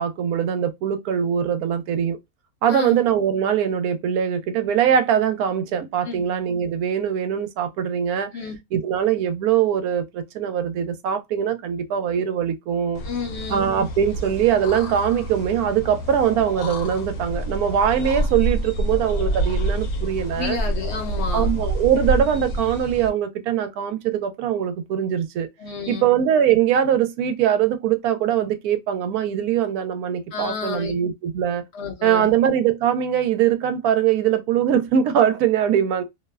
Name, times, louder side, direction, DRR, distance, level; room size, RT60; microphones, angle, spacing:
voice 1, 0.0-2.2 2.6-8.3 8.7-13.0 13.5-20.6 21.3-25.5 25.9-31.6 32.0-36.0, right 9 dB, 90° right, 1.1 m, -22 dB
voice 2, 2.7-3.0 6.0-6.3 8.3-8.6 13.0-13.7 20.3-21.5 25.6-26.1 30.3-31.0 31.7-32.3, left 5 dB, 60° left, 0.7 m, -30 dB
sound 1, 12.9-23.1, right 1 dB, 80° left, 1.1 m, -27 dB
2.7 x 2.0 x 2.2 m
omnidirectional pair, 1.5 m